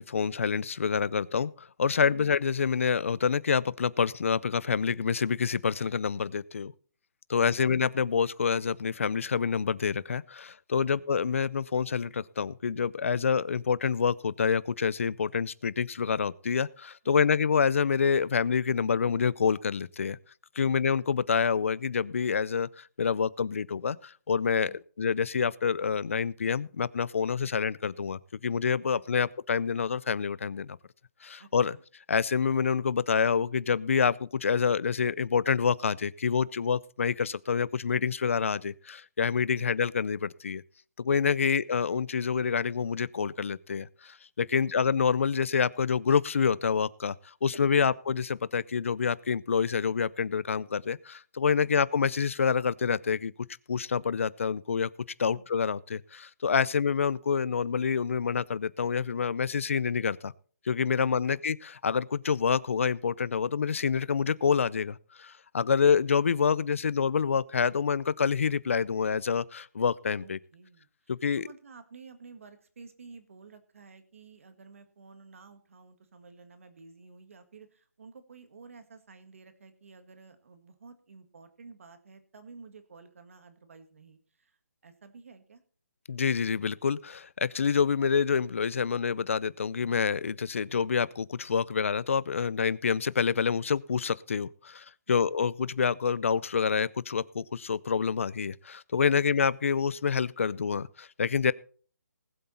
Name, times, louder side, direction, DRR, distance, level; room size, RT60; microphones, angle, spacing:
voice 1, 0.0-6.7 7.3-20.2 20.6-30.8 31.2-31.8 32.1-40.6 41.0-53.3 53.7-54.9 55.2-60.3 60.7-70.4 71.1-71.5 86.1-101.5, left 6 dB, 50° left, 21 dB, 0.5 m, -27 dB
voice 2, 17.0-17.4 20.6-20.9 24.6-24.8 27.4-27.5 29.2-29.3 31.4-31.8 39.5-39.7 41.4-41.6 44.5-44.9 47.7-47.9 51.6-51.8 55.3-55.5 56.6-56.8 61.0-61.4 70.2-84.6 84.8-85.6 95.1-95.3 99.1-99.4 101.4-101.5, right 4 dB, 50° right, 9 dB, 1.9 m, -52 dB
19.5 x 7.9 x 4.3 m, 0.43 s
hypercardioid pair, 175°, 9 cm